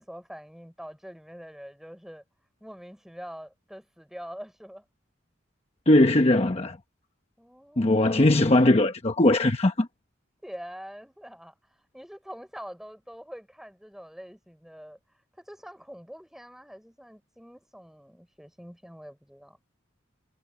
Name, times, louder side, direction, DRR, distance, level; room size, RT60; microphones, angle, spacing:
voice 1, 0.0-2.2 2.6-4.8 7.4-8.4 10.4-15.0 15.4-19.6, equal, ahead, 4.7 m, -44 dB
voice 2, 5.9-6.8 7.8-9.9, left 1 dB, 35° left, 1.0 m, -20 dB
head